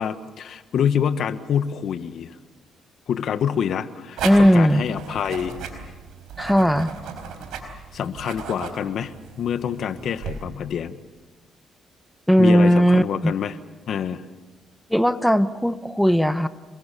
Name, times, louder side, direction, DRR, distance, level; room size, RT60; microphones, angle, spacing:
voice 1, 0.0-2.3 3.1-5.6 7.9-11.0 12.4-13.6 13.9-14.2, left 8 dB, 65° left, 11 dB, 1.4 m, -26 dB
voice 2, 4.2-4.8 6.4-6.9 12.3-13.3 14.9-16.5, equal, ahead, 11 dB, 1.1 m, -17 dB
sound 1, 4.2-10.4, right 6 dB, 85° right, 4.4 m, -36 dB
27.0 x 22.5 x 6.9 m, 1.2 s
cardioid pair, 90°, 0 cm